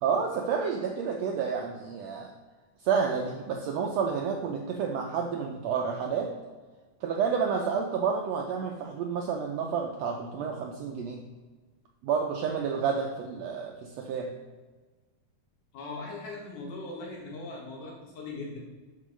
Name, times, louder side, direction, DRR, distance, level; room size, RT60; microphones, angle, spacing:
voice 1, 0.0-2.3 2.8-6.3 7.0-11.2 12.0-14.3, right 6 dB, 80° right, 1 dB, 1.5 m, -30 dB
voice 2, 15.7-18.6, left 3 dB, 75° left, -1 dB, 2.9 m, -39 dB
6.6 x 4.6 x 6.2 m, 1.4 s
omnidirectional pair, 3.6 m